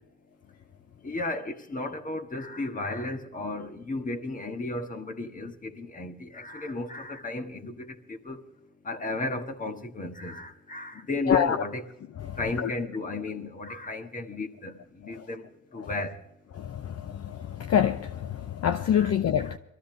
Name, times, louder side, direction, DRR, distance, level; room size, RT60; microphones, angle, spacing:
voice 1, 1.0-8.4 8.8-11.9 12.4-16.2 18.9-19.1 19.4-19.6, left 2 dB, 25° left, 1.6 m, -34 dB
voice 2, 16.6-19.6, left 9 dB, 55° left, 0.7 m, -26 dB
22.5 x 14.0 x 3.3 m
cardioid pair, 90°, 30 cm